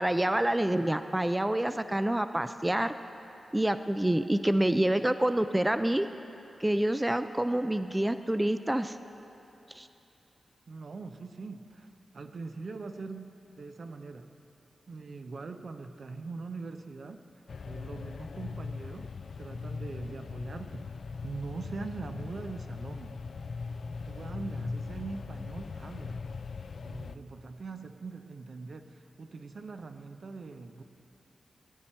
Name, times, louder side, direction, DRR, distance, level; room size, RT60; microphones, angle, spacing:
voice 1, 0.0-2.9 3.5-6.1 6.6-9.0 9.7-9.9, right 1 dB, 15° right, 10 dB, 0.3 m, -27 dB
voice 2, 10.7-14.3 14.9-19.1 19.4-20.9 21.2-23.2 24.0-26.2 26.8-30.8, right 4 dB, 65° right, 8 dB, 0.6 m, -42 dB
sound 1, 17.5-27.2, left 4 dB, 65° left, 0.3 m, -40 dB
17.5 x 9.0 x 4.3 m, 2.9 s
cardioid pair, 70°, 0 cm